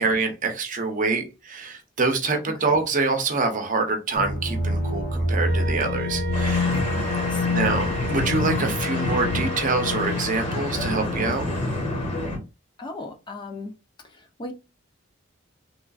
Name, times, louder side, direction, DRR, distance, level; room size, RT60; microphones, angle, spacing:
voice 1, 0.0-6.7 7.5-11.5, right 3 dB, 40° right, 0.6 m, -25 dB
sound 1, 4.2-11.8, left 2 dB, 85° left, 1.8 m, -28 dB
Wind instrument woodwind instrument, 5.4-10.3, left 3 dB, 60° left, 1.7 m, -34 dB
sound 2, 6.3-12.4, left 1 dB, 40° left, 1.4 m, -28 dB
voice 2, 7.1-7.6 12.8-13.7 14.0-14.5, left 2 dB, 25° left, 0.3 m, -37 dB
3.2 x 2.4 x 2.3 m
head